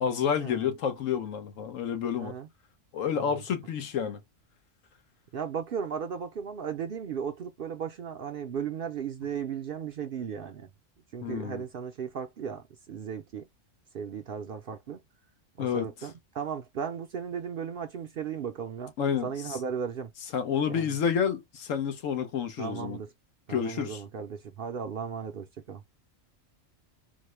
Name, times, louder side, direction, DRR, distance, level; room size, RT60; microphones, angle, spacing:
voice 1, 0.0-2.3 2.9-4.2 11.2-11.6 15.6-15.9 19.0-19.3 20.3-23.0 23.5-24.0, left 7 dB, 80° left, 1.2 m, -29 dB
voice 2, 5.3-10.7 11.1-13.5 13.9-15.0 15.6-18.9 19.2-20.1 20.6-21.0 22.6-23.1 23.5-25.8, right 7 dB, 60° right, 0.6 m, -36 dB
4.1 x 2.1 x 3.1 m
omnidirectional pair, 1.3 m